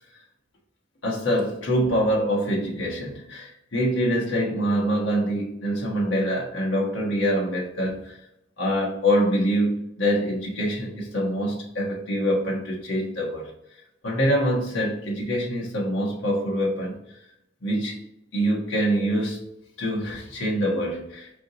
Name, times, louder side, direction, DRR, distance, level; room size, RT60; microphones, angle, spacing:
voice 1, 1.0-8.2 8.6-13.5 14.0-16.9 17.6-18.0 18.3-19.4 19.8-21.4, equal, 70° left, -3 dB, 1.3 m, -25 dB
4.8 x 2.9 x 3.8 m, 0.79 s
head